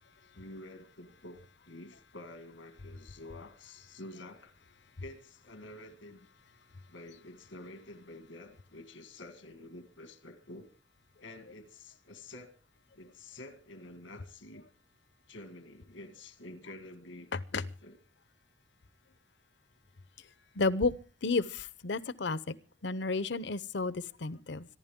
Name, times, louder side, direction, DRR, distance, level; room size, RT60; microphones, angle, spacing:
voice 1, 0.3-4.5 5.0-6.3 6.9-10.7 11.2-12.6 12.9-14.6 15.3-18.0, left 1 dB, 90° left, 1.8 m, -49 dB
voice 2, 20.6-20.9 21.2-22.6 22.8-24.7, left 3 dB, 65° left, 0.8 m, -31 dB
25.5 x 11.5 x 3.7 m
head